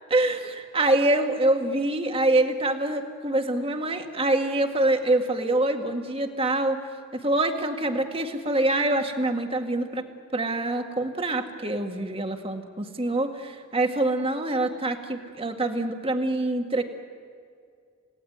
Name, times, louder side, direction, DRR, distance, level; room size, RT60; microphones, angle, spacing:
voice 1, 0.1-6.8 7.1-10.0 10.3-16.8, right 2 dB, 30° right, 5 dB, 1.9 m, -25 dB
28.5 x 18.0 x 9.4 m, 2.3 s
head